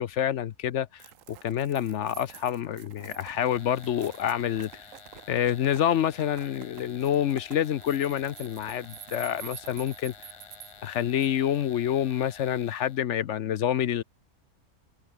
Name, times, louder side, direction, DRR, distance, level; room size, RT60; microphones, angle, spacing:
voice 1, 0.0-4.9 5.3-10.4 10.8-14.0, left 10 dB, 60° left, 0.9 m, -27 dB
sound 1, 1.0-11.6, right 12 dB, 65° right, 1.0 m, -48 dB
sound 2, 3.2-13.0, left 5 dB, 35° left, 0.5 m, -50 dB
omnidirectional pair, 1.6 m